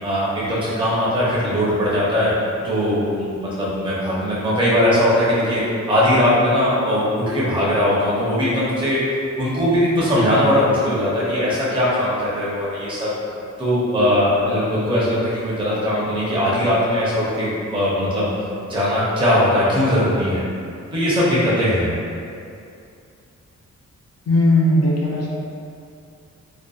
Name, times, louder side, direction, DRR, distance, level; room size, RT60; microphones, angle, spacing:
voice 1, 0.0-2.3 2.6-5.6 5.9-9.0 9.4-13.1 13.6-18.3 18.7-20.4 20.9-21.9, left 1 dB, 15° right, -8 dB, 0.6 m, -20 dB
voice 2, 24.3-25.3, left 1 dB, 60° left, -4 dB, 0.4 m, -17 dB
2.5 x 2.1 x 2.3 m, 2.5 s
wide cardioid pair, 110°, 30 cm